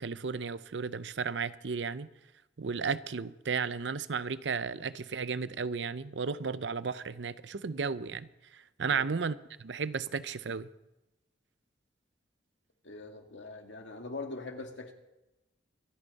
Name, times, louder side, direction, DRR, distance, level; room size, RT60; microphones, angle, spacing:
voice 1, 0.0-2.1 2.6-9.3 9.6-10.7, right 5 dB, 80° right, 0.6 m, -34 dB
voice 2, 12.8-14.9, left 3 dB, 85° left, 1.9 m, -42 dB
25.5 x 9.9 x 4.1 m
head